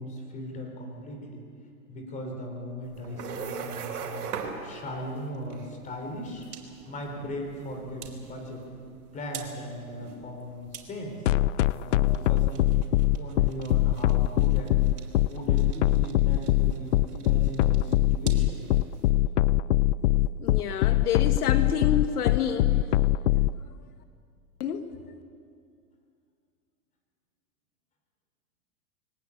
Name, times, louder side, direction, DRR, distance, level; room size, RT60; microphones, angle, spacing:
voice 1, 0.0-1.4 1.9-4.3 4.6-6.5 6.9-8.7 9.1-11.2 11.7-12.7 13.2-14.8 15.1-18.6, equal, 15° left, 2 dB, 3.8 m, -38 dB
sound 1, 2.8-19.1, right 6 dB, 80° right, 4.3 m, -43 dB
sound 2, 11.3-23.5, left 16 dB, 55° left, 0.5 m, -22 dB
voice 2, 20.4-22.9 24.6-24.9, left 8 dB, 75° left, 8 dB, 1.6 m, -29 dB
23.0 x 19.0 x 8.6 m, 2.3 s
supercardioid pair, 155°, 46 cm